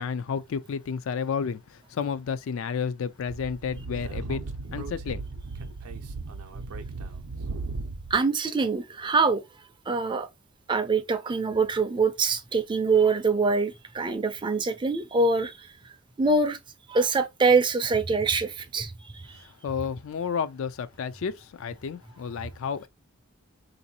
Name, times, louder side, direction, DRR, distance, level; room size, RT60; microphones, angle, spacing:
voice 1, 0.0-4.4 4.7-5.2 19.6-22.9, left 6 dB, 60° left, 0.3 m, -31 dB
Speech / Wind, 3.3-8.2, right 3 dB, 80° right, 0.5 m, -36 dB
voice 2, 8.1-9.4 9.9-10.3 10.7-15.5 16.2-16.6 16.9-18.9, right 4 dB, 20° right, 0.4 m, -24 dB
3.9 x 2.6 x 2.7 m
head